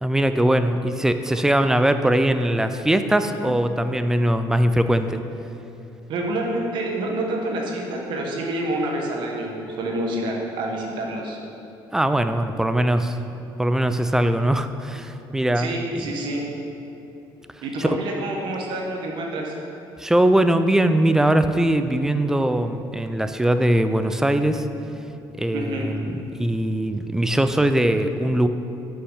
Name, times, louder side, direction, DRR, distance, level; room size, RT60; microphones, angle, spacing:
voice 1, 0.0-5.2 11.9-13.2 13.6-16.1 17.8-18.0 20.0-24.7 25.4-28.5, right 1 dB, 5° right, 9 dB, 0.3 m, -21 dB
voice 2, 6.1-11.4 15.5-16.4 17.6-19.5 25.5-25.9, right 1 dB, 65° right, 0 dB, 1.3 m, -27 dB
6.6 x 5.7 x 5.5 m, 2.9 s
cardioid pair, 135°, 9 cm